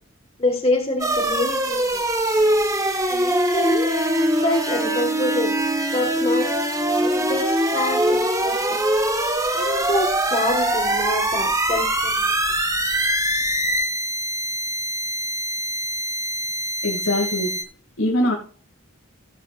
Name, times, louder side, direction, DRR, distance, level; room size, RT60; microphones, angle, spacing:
voice 1, 0.4-2.0 3.1-3.9 4.2-5.5 5.9-6.5 6.9-8.8 9.5-12.4, left 2 dB, 30° left, 1 dB, 1.8 m, -26 dB
sound 1, 1.0-17.6, right 1 dB, 15° right, 1.4 m, -23 dB
voice 2, 16.8-17.5 18.0-18.3, left 1 dB, 85° left, -2 dB, 2.6 m, -22 dB
16.5 x 7.9 x 2.5 m, 0.42 s
head